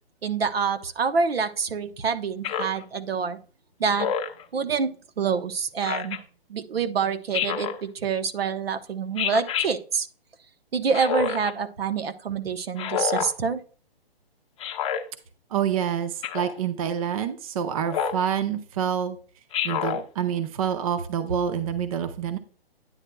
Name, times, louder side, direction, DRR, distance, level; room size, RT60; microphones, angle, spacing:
voice 1, 0.2-3.4 3.8-4.1 4.5-4.9 5.2-6.2 6.5-10.1 10.7-13.6, right 5 dB, 70° right, 9 dB, 1.0 m, -26 dB
Speech synthesizer, 2.4-2.8 4.0-4.4 5.8-6.2 7.3-7.8 9.2-9.7 10.9-11.5 12.8-13.3 14.6-15.0 16.2-16.6 17.9-18.3 19.5-20.0, left 8 dB, 30° left, 0.8 m, -28 dB
voice 2, 15.5-19.2 19.6-22.4, right 8 dB, 35° right, 9 dB, 0.7 m, -27 dB
9.7 x 7.5 x 2.3 m, 0.41 s
hypercardioid pair, 150°, 30 cm